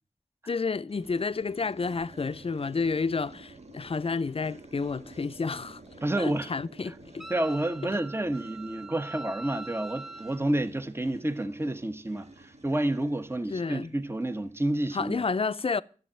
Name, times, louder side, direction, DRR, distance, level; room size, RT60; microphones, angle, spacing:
voice 1, 0.5-5.8 6.2-7.2 13.5-13.9 14.9-15.8, left 4 dB, 45° left, 0.5 m, -30 dB
sound 1, 0.9-14.8, right 2 dB, 60° right, 1.6 m, -51 dB
voice 2, 6.0-6.5 6.9-7.0 7.3-15.2, right 1 dB, 20° right, 1.1 m, -29 dB
Wind instrument woodwind instrument, 7.2-10.4, right 2 dB, ahead, 0.7 m, -43 dB
11.0 x 7.8 x 8.7 m
wide cardioid pair, 55°, 13 cm